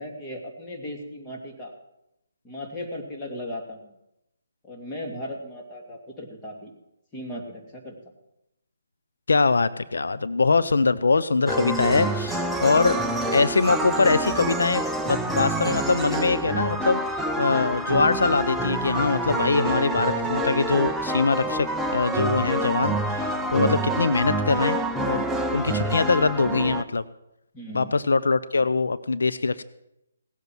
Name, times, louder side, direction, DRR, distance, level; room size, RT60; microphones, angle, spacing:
voice 1, 0.0-1.7 2.4-3.9 4.6-6.7 7.1-7.9 25.6-26.0 27.5-28.0, left 1 dB, 15° left, -1 dB, 2.4 m, -37 dB
voice 2, 9.3-13.0 13.3-24.8 25.1-27.0 27.7-29.6, left 4 dB, 85° left, 14 dB, 0.6 m, -23 dB
sound 1, 11.5-26.8, right 1 dB, ahead, 0.6 m, -27 dB
18.0 x 8.2 x 6.1 m, 0.85 s
hypercardioid pair, 165°, 0 cm